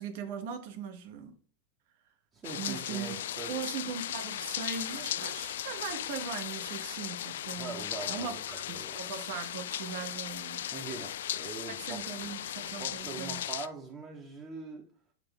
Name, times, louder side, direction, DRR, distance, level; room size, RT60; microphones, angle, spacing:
voice 1, 0.0-1.3 2.6-3.2 3.5-8.3 8.7-10.7 11.8-13.4, right 7 dB, 50° right, 1.0 m, -39 dB
voice 2, 2.3-3.5 7.6-9.0 10.7-12.1 12.8-14.9, right 4 dB, 25° right, 1.1 m, -42 dB
sound 1, 2.4-13.7, left 11 dB, 60° left, 0.3 m, -37 dB
8.2 x 3.2 x 3.7 m
figure-of-eight pair, 90°, 0 cm